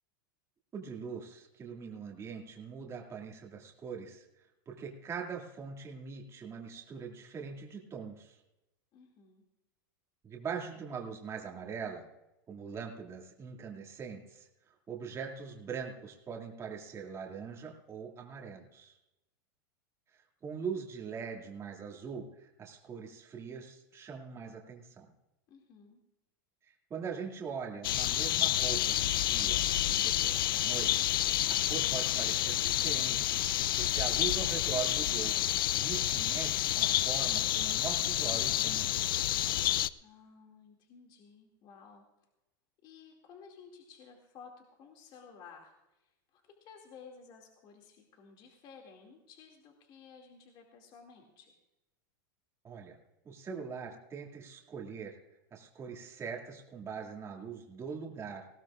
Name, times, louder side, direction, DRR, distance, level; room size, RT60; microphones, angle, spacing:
voice 1, 0.7-8.4 10.2-12.1 12.5-14.5 14.9-19.0 20.1-25.1 26.6-31.2 31.5-33.4 33.8-39.3 52.6-53.0 53.2-55.2 55.5-58.5, right 6 dB, 25° right, -1 dB, 2.3 m, -42 dB
voice 2, 8.9-9.4 25.5-26.0 40.0-42.0 42.8-51.6, left 6 dB, 40° left, 1 dB, 2.3 m, -55 dB
sound 1, 27.8-39.9, left 13 dB, 85° left, 0.4 m, -29 dB
19.5 x 16.5 x 2.5 m, 0.94 s
hypercardioid pair, 120°, 11 cm